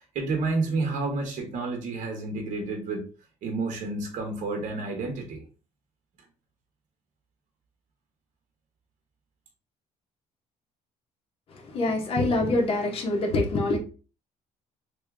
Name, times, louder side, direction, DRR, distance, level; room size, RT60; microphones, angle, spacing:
voice 1, 0.1-3.0 3.4-5.4, right 3 dB, 65° right, 1.3 m, -30 dB
voice 2, 11.5-13.8, left 2 dB, 45° left, 1.3 m, -25 dB
3.4 x 2.8 x 3.5 m
cardioid pair, 135°, 13 cm